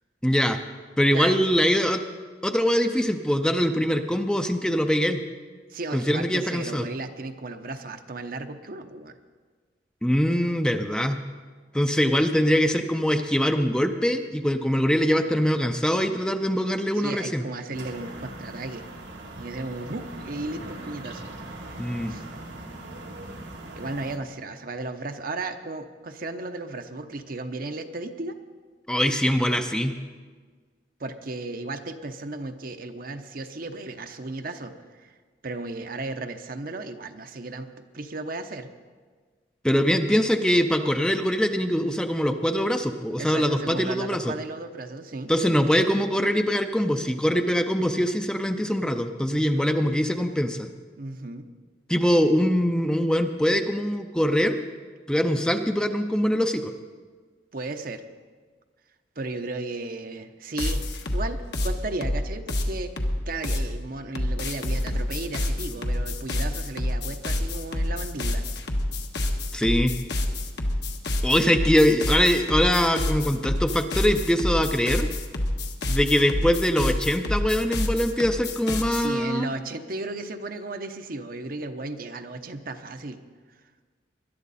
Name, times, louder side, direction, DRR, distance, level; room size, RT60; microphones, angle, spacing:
voice 1, 0.2-0.6 1.0-2.0 2.4-5.2 5.9-6.8 10.0-11.2 11.7-17.4 21.8-22.1 28.9-29.9 39.6-44.3 45.3-50.7 51.9-54.6 55.1-56.7 69.5-69.9 71.2-75.1 75.9-79.5, equal, 5° left, 6 dB, 0.5 m, -23 dB
voice 2, 5.7-9.2 16.9-18.8 19.4-21.3 22.1-22.2 23.8-28.4 31.0-35.1 35.4-37.7 37.9-38.7 43.2-45.3 49.3-49.7 51.0-51.5 57.5-58.0 59.2-62.9 63.3-68.4 78.9-83.2, right 2 dB, 55° right, 7 dB, 0.8 m, -35 dB
sound 1, 17.7-24.2, right 2 dB, 90° right, 1.9 m, -40 dB
sound 2, 60.6-63.7 64.1-79.1, left 1 dB, 70° left, 1.3 m, -28 dB
20.5 x 11.5 x 4.2 m, 1.5 s
head